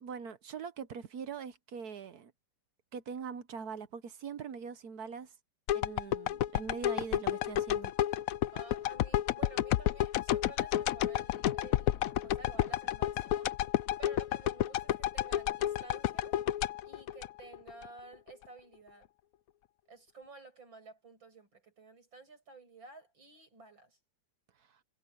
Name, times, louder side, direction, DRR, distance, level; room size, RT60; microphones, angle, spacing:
voice 1, 0.0-2.3 2.9-5.3 5.7-7.9, right 6 dB, 60° right, 1.3 m, -42 dB
sound 1, 5.7-17.9 18.3-18.4, left 12 dB, 75° left, 0.8 m, -31 dB
voice 2, 8.5-13.7 14.0-16.4 16.8-19.1 19.9-24.0, right 3 dB, 80° right, 8.5 m, -53 dB
omnidirectional pair, 2.1 m